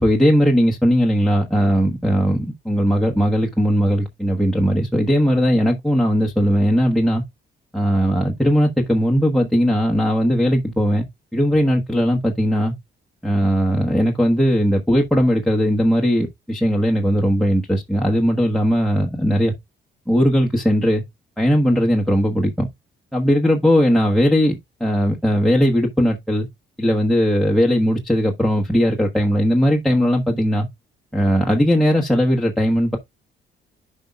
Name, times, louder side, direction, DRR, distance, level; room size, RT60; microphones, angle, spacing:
voice 1, 0.0-7.2 7.7-11.1 11.3-12.7 13.2-19.5 20.1-21.0 21.4-22.7 23.1-26.5 26.8-30.7 31.1-33.0, equal, ahead, 1.3 m, -18 dB
10.0 x 5.4 x 2.3 m
cardioid pair, 90°, 20 cm